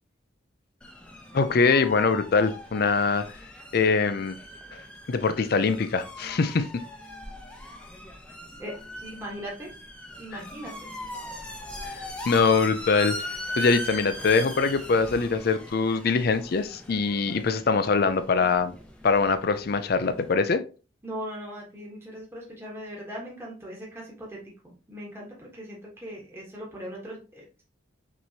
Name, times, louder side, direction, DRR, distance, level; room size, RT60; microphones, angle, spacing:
sound 1, 0.8-20.3, left 1 dB, 5° left, 0.7 m, -40 dB
voice 1, 1.3-3.3 3.7-4.4 5.1-6.7 11.8-13.1 13.6-18.7 19.0-20.6, left 4 dB, 50° left, 0.4 m, -23 dB
voice 2, 8.6-9.7 10.2-10.9 21.0-24.4 24.6-27.6, equal, 15° right, 1.3 m, -39 dB
6.0 x 3.0 x 2.8 m
head